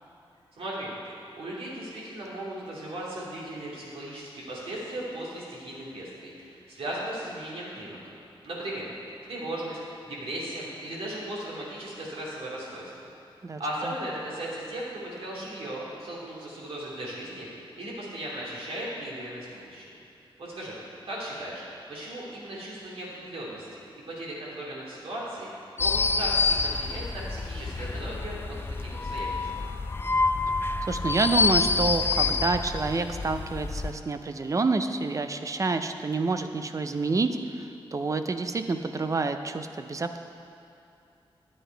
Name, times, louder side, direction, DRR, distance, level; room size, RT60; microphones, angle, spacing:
voice 1, 0.5-0.9 1.4-8.0 8.4-8.9 9.2-13.0 13.6-19.9 20.4-20.8 21.1-21.6 21.9-25.5 25.8-29.5, right 1 dB, 85° right, -5 dB, 2.5 m, -37 dB
voice 2, 13.4-13.9 30.9-40.2, right 3 dB, 35° right, 8 dB, 0.5 m, -28 dB
sound 1, 25.8-33.9, left 4 dB, 25° left, 0.3 m, -27 dB
9.9 x 8.5 x 4.5 m, 2.7 s
wide cardioid pair, 110°, 10 cm